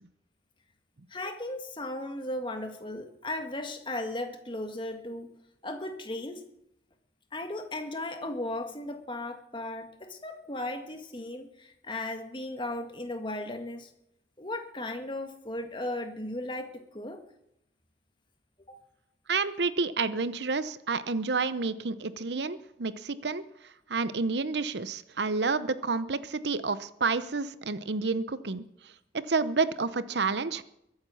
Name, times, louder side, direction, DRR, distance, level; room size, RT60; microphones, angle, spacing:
voice 1, 1.1-5.3 5.6-6.4 7.3-13.9 14.4-17.2 18.7-18.8, left 1 dB, 25° left, 6 dB, 1.9 m, -36 dB
voice 2, 19.3-23.4 23.9-28.6 29.1-30.6, right 4 dB, 75° right, 14 dB, 0.8 m, -29 dB
22.5 x 8.9 x 7.2 m, 0.79 s
head